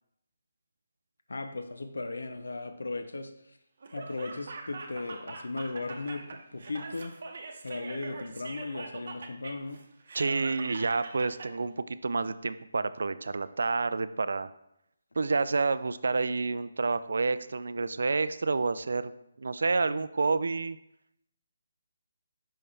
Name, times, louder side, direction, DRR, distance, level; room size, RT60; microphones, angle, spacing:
voice 1, 1.3-3.6 3.9-7.2 7.6-9.8, left 3 dB, 90° left, 8 dB, 0.5 m, -37 dB
Laughter, 3.8-11.5, right 3 dB, 60° right, 0.8 m, -43 dB
voice 2, 10.1-14.5 15.2-19.1 19.4-20.8, right 4 dB, 75° right, 14 dB, 0.3 m, -29 dB
5.5 x 5.3 x 3.3 m, 0.79 s
hypercardioid pair, 160°, 0 cm